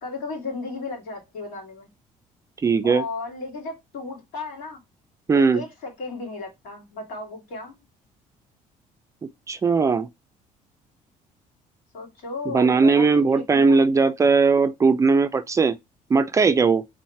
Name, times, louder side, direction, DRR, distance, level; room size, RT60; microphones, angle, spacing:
voice 1, 0.0-1.9 2.8-4.8 5.3-7.7 11.9-13.8, left 3 dB, 90° left, 2.3 m, -34 dB
voice 2, 2.6-3.0 5.3-5.6 9.5-10.1 12.5-15.7 16.1-16.8, right 4 dB, 20° right, 0.3 m, -19 dB
3.9 x 3.1 x 4.2 m
cardioid pair, 135°, 14 cm